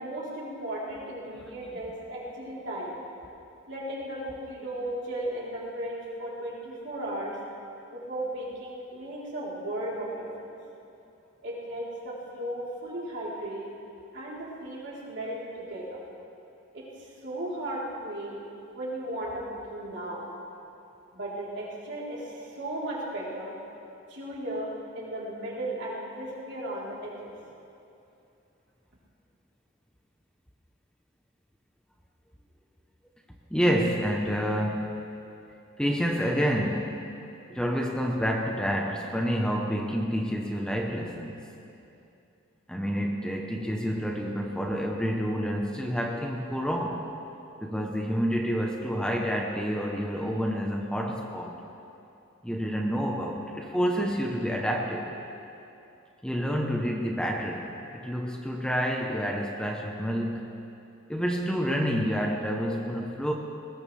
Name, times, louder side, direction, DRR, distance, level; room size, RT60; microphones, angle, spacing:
voice 1, 0.0-3.0 3.7-7.4 7.9-10.5 11.4-13.7 14.1-16.0 16.7-20.2 21.1-23.5 24.1-27.3, right 1 dB, 60° right, -6 dB, 3.8 m, -36 dB
voice 2, 33.5-35.1 35.8-37.1 37.5-41.4 42.7-47.1 47.6-51.6 52.4-55.2 56.2-60.5 61.1-63.3, equal, 5° left, 0 dB, 0.8 m, -28 dB
20.5 x 19.5 x 3.4 m, 2.7 s
head